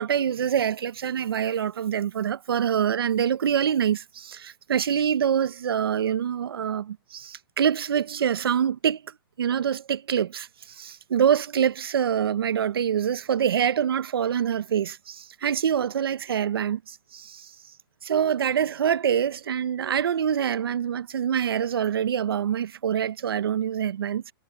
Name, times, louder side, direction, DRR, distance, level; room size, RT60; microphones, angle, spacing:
voice 1, 0.0-9.0 9.4-17.5 18.0-24.2, right 8 dB, 90° right, 0.9 m, -25 dB
hypercardioid pair, 170°, 12 cm